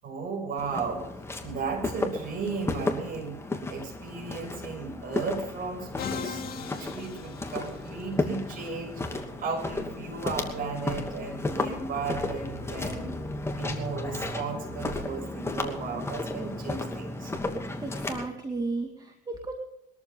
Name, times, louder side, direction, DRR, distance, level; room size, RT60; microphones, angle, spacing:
voice 1, 0.0-1.1 1.4-3.4 3.7-13.2 13.5-17.3, right 4 dB, 55° right, 1 dB, 6.9 m, -35 dB
Walk footsteps, 0.6-18.3, left 2 dB, 15° left, 2.6 m, -34 dB
Musical instrument, 6.0-8.1, left 5 dB, 65° left, 2.3 m, -38 dB
voice 2, 17.8-19.5, right 3 dB, 25° right, 4 dB, 2.2 m, -34 dB
22.0 x 13.5 x 3.8 m, 0.81 s
cardioid pair, 110°, 17 cm